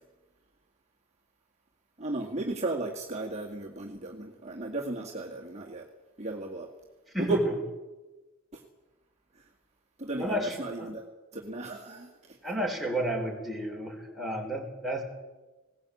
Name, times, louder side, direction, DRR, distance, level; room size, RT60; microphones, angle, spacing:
voice 1, 2.0-5.9 6.2-6.7 7.2-7.4 8.5-8.6 10.0-12.1, right 2 dB, 30° right, -1 dB, 2.1 m, -34 dB
voice 2, 10.2-10.9 12.4-15.0, equal, ahead, 3 dB, 4.2 m, -32 dB
20.5 x 18.0 x 8.5 m, 1.2 s
head